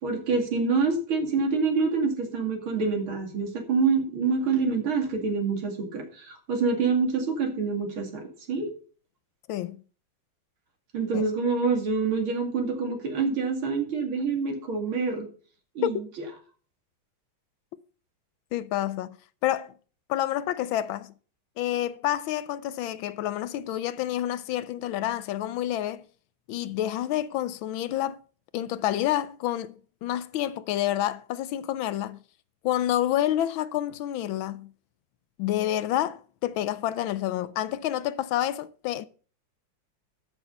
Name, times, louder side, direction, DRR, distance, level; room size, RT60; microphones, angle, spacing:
voice 1, 0.0-8.7 10.9-15.3 15.7-16.0, right 4 dB, 80° right, 3.1 m, -26 dB
voice 2, 18.5-19.2 19.4-19.7 20.1-21.1 21.6-26.0 26.5-28.2 28.5-32.2 32.6-34.7 35.4-39.1, left 12 dB, 80° left, 1.4 m, -28 dB
13.0 x 6.3 x 5.3 m
omnidirectional pair, 2.2 m